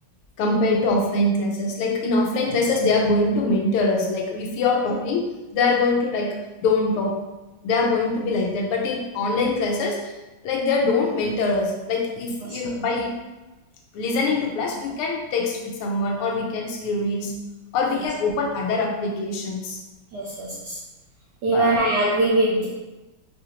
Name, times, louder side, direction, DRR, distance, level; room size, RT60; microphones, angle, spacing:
voice 1, 0.4-5.3 5.5-6.3 6.6-7.1 7.6-10.1 10.4-13.1 13.9-17.3 17.7-19.8 21.4-21.7, left 3 dB, 85° left, 0 dB, 1.6 m, -23 dB
voice 2, 20.1-20.8 21.4-22.7, right 1 dB, 70° right, -5 dB, 1.0 m, -22 dB
4.8 x 2.5 x 2.8 m, 1.1 s
omnidirectional pair, 2.4 m